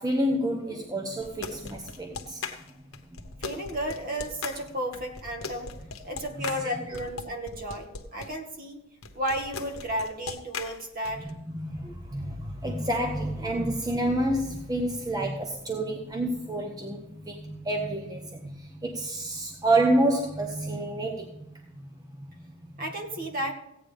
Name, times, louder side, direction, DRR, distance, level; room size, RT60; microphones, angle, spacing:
voice 1, 0.0-2.4 6.6-7.0 11.5-21.6 22.2-22.3, right 1 dB, 20° right, 0.9 m, -29 dB
sound 1, 1.2-8.3 9.0-11.3, left 5 dB, 75° left, 1.2 m, -39 dB
voice 2, 3.4-5.7 6.0-8.8 9.1-11.3 22.8-23.5, equal, 40° right, 1.8 m, -33 dB
16.0 x 9.0 x 3.5 m
head